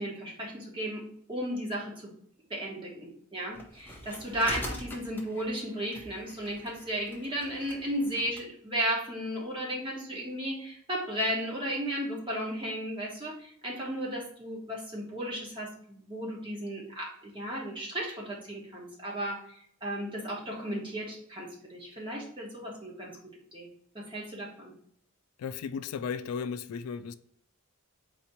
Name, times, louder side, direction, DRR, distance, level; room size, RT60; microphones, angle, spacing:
voice 1, 0.0-2.1 2.5-19.4 19.8-23.1 23.5-23.7 23.9-24.7, equal, 20° right, 1.2 m, -34 dB
sound 1, 3.5-8.5, left 1 dB, 10° left, 0.6 m, -44 dB
voice 2, 25.4-27.1, left 6 dB, 85° left, 0.3 m, -35 dB
4.2 x 2.8 x 4.3 m
head